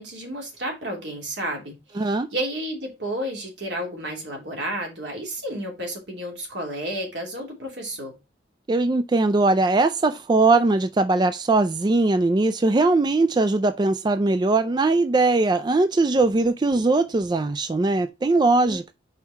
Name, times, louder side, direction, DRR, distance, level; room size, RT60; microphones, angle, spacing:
voice 1, 0.0-8.2 18.6-18.8, right 1 dB, 75° right, 2.9 m, -32 dB
voice 2, 2.0-2.3 8.7-18.9, right 3 dB, 25° right, 0.3 m, -20 dB
5.5 x 4.7 x 4.3 m
head